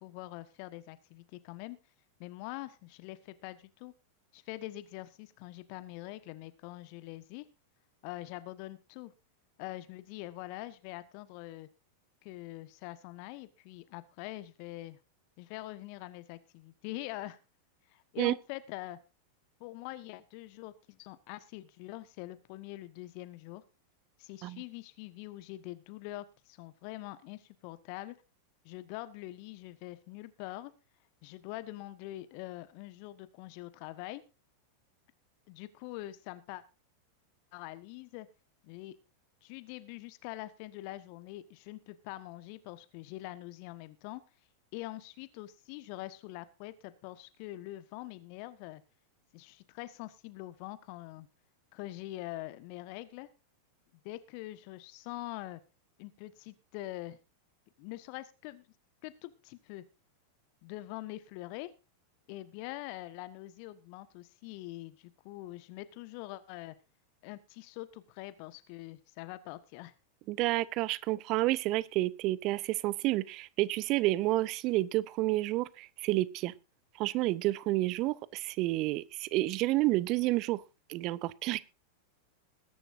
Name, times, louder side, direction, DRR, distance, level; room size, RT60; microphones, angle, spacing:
voice 1, 0.0-1.8 2.2-3.9 4.3-7.4 8.0-9.1 9.6-11.7 12.2-15.0 15.4-17.4 17.9-19.0 19.6-23.6 24.2-28.2 28.6-30.7 31.2-34.2 35.5-36.6 37.5-38.3 38.6-38.9 39.4-44.2 44.7-48.8 49.3-51.3 51.7-53.3 54.0-55.6 56.0-57.2 57.8-58.7 59.0-59.8 60.6-61.7 62.3-66.7 67.2-69.9, left 17 dB, 45° left, 1.3 m, -44 dB
voice 2, 70.3-76.5 77.0-80.6 80.9-81.6, right 18 dB, 40° right, 0.8 m, -30 dB
21.0 x 11.0 x 2.6 m
figure-of-eight pair, 90°, 0 cm